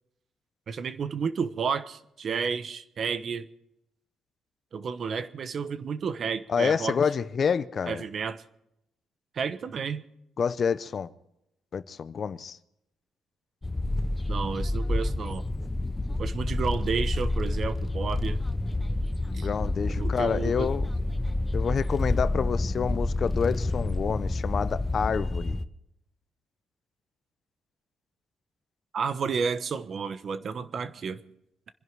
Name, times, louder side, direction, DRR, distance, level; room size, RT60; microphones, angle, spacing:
voice 1, 0.7-3.5 4.7-7.0 7.9-8.4 9.3-10.0 14.3-15.4 16.2-18.4 19.3-19.5 20.0-20.7 28.9-31.2, right 6 dB, 50° right, 1.0 m, -31 dB
voice 2, 6.5-8.0 10.4-11.1 11.7-12.6 19.4-20.9 21.5-25.6, left 6 dB, 50° left, 0.7 m, -28 dB
sound 1, 13.6-25.6, left 2 dB, 15° left, 0.7 m, -29 dB
26.0 x 11.0 x 4.7 m
cardioid pair, 90°, 0 cm